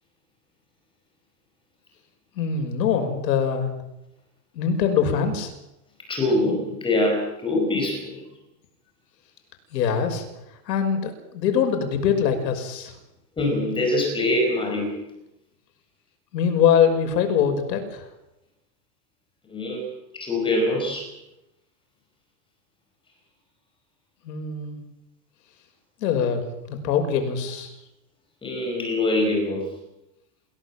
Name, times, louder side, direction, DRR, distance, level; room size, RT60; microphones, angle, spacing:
voice 1, 2.4-3.7 4.5-5.5 9.7-10.2 10.7-13.0 16.3-18.0 24.2-24.8 26.0-27.7, left 7 dB, 80° left, 6 dB, 6.1 m, -23 dB
voice 2, 6.1-8.2 13.4-15.0 19.4-19.9 20.1-21.1 28.4-29.6, left 1 dB, 10° left, 1 dB, 4.9 m, -24 dB
28.5 x 17.0 x 7.5 m, 0.89 s
supercardioid pair, 180°, 50 cm